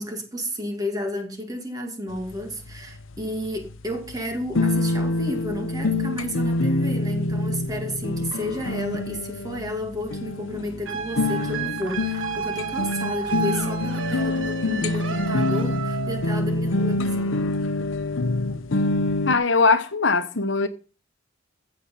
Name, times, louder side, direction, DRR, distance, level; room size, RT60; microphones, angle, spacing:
voice 1, 0.0-17.3, left 1 dB, 20° right, 2.3 m, -32 dB
sound 1, 2.1-19.4, left 2 dB, 80° left, 0.8 m, -26 dB
sound 2, 10.9-16.4, right 6 dB, 75° right, 1.6 m, -31 dB
voice 2, 19.2-20.7, left 4 dB, 65° left, 1.1 m, -20 dB
15.0 x 7.2 x 5.5 m
head